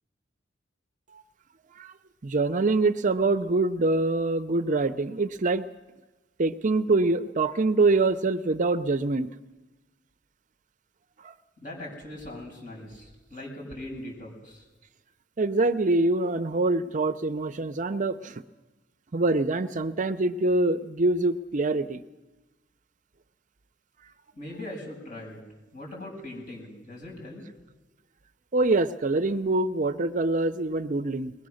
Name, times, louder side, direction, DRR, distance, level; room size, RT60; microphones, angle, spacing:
voice 1, 2.2-5.7 6.4-9.3 11.2-11.3 15.4-18.4 19.1-22.0 28.5-31.3, right 2 dB, 45° right, 11 dB, 0.6 m, -25 dB
voice 2, 11.6-14.6 24.3-25.4 25.7-27.4, left 1 dB, 45° left, -1 dB, 6.7 m, -40 dB
21.0 x 20.5 x 6.4 m, 1.1 s
head